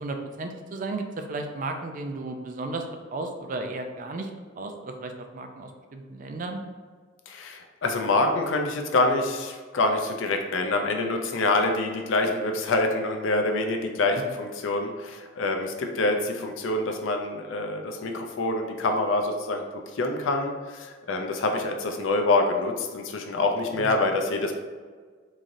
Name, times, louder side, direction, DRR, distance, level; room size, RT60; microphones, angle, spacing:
voice 1, 0.0-2.9 3.1-4.3 4.6-6.6 23.8-23.9, right 2 dB, 45° right, 5 dB, 0.4 m, -34 dB
voice 2, 7.3-19.6 19.9-24.6, left 2 dB, 75° left, 4 dB, 0.5 m, -26 dB
3.7 x 3.1 x 2.6 m, 1.5 s
head